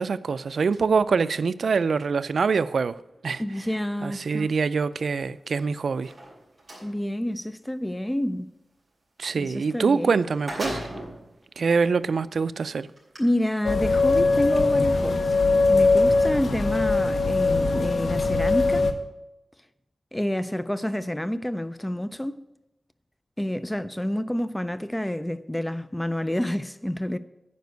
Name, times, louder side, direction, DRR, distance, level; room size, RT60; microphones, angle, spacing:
voice 1, 0.0-3.0 3.2-3.6 4.0-6.1 9.2-10.8 11.6-12.9, right 5 dB, 75° right, 0.3 m, -24 dB
voice 2, 3.4-4.5 6.8-8.5 9.4-10.2 13.2-15.4 15.7-18.8 20.1-22.4 23.4-27.2, left 1 dB, 10° left, 0.3 m, -28 dB
sound 1, 5.9-6.9 9.7-9.8 10.1-11.2 11.9-12.0 13.0-13.2, right 1 dB, 15° right, 4.5 m, -35 dB
Tornado Sirens - Tulsa, 13.6-18.9, left 3 dB, 75° left, 0.9 m, -21 dB
9.4 x 5.2 x 8.0 m
wide cardioid pair, 135°, 0 cm